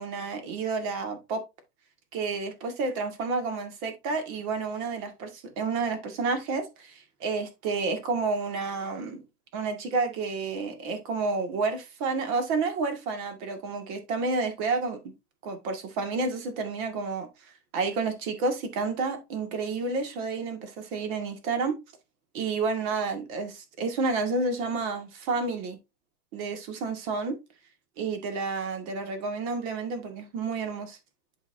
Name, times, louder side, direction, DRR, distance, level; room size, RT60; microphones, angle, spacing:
voice 1, 0.0-1.4 2.1-9.2 9.5-15.0 15.4-17.3 17.7-21.8 22.3-25.8 26.3-27.4 28.0-31.0, right 4 dB, 55° right, 2.2 m, -30 dB
11.0 x 4.3 x 2.7 m
supercardioid pair, 130°, 50 cm